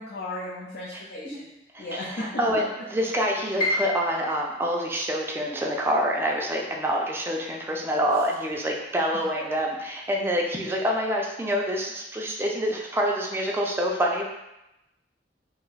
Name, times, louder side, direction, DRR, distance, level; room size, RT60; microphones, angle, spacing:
voice 1, 0.0-1.5 1.8-2.6 9.4-9.5, left 1 dB, 65° left, -7 dB, 0.5 m, -35 dB
voice 2, 2.2-2.6 2.9-14.2, equal, 15° right, -1 dB, 0.4 m, -26 dB
Piano, 3.6-9.5 9.9-11.0 11.4-11.5 12.2-12.6, left 2 dB, 25° left, 0.9 m, -35 dB
2.6 x 2.2 x 3.9 m, 0.90 s
head